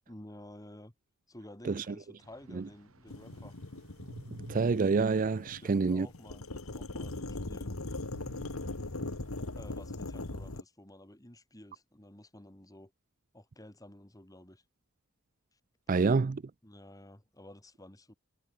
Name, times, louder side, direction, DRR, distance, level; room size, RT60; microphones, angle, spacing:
voice 1, 0.1-0.9 1.3-3.6 5.6-7.7 9.6-12.9 13.3-14.6 15.5-15.6 16.6-18.1, left 1 dB, 15° left, 2.2 m, -52 dB
sound 1, 2.2-6.5 6.9-7.0 8.1-9.8, right 1 dB, 80° right, 2.4 m, -52 dB
sound 2, 3.1-10.6, left 2 dB, 80° left, 1.8 m, -40 dB
voice 2, 4.5-6.1 15.9-16.4, right 4 dB, 40° right, 0.4 m, -27 dB
head